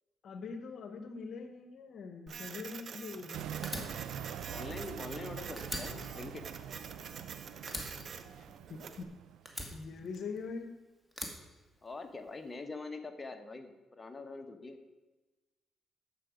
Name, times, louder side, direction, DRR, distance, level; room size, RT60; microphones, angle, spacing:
voice 1, 0.2-3.7 8.4-9.1 9.7-10.8, left 4 dB, 60° left, 8 dB, 1.0 m, -43 dB
Printer, 2.3-9.0, right 6 dB, 55° right, 1.0 m, -47 dB
sound 1, 3.3-9.6, right 10 dB, 85° right, 0.5 m, -44 dB
Fire, 3.6-5.3 5.6-7.3 7.7-9.0 9.5-10.6 11.1-12.3, equal, ahead, 2.1 m, -43 dB
voice 2, 4.5-6.4 11.8-14.8, left 3 dB, 25° left, 6 dB, 1.2 m, -44 dB
12.0 x 7.7 x 5.1 m, 1.2 s
cardioid pair, 90°, 0 cm